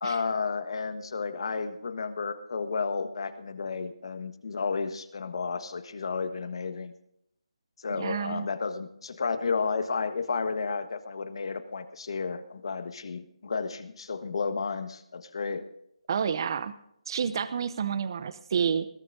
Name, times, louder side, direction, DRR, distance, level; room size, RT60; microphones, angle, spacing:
voice 1, 0.0-6.9 7.8-15.6, left 4 dB, 55° left, 10 dB, 1.4 m, -32 dB
voice 2, 8.0-8.5 16.1-16.7 17.1-18.8, right 7 dB, 40° right, 14 dB, 0.7 m, -29 dB
21.5 x 15.5 x 2.7 m, 0.75 s
figure-of-eight pair, 155°, 3 cm